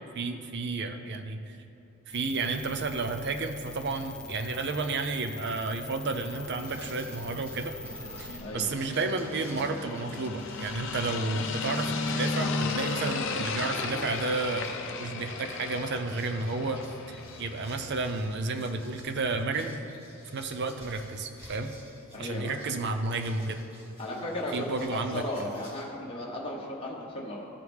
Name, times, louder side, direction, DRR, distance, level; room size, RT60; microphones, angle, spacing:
voice 1, 0.1-1.6 2.1-7.7 8.2-14.7 15.0-19.8 20.3-21.7 22.2-23.6 24.5-25.5, right 3 dB, 50° right, 7 dB, 0.5 m, -32 dB
sound 1, 2.1-8.4, left 2 dB, 5° left, 0.3 m, -44 dB
sound 2, 6.3-17.9, left 4 dB, 55° left, 0.6 m, -35 dB
sound 3, 6.4-25.9, equal, 25° right, 1.5 m, -53 dB
voice 2, 8.4-8.8 22.1-22.5 24.0-27.4, left 1 dB, 25° left, -4 dB, 1.0 m, -35 dB
14.0 x 4.7 x 3.5 m, 2.9 s
head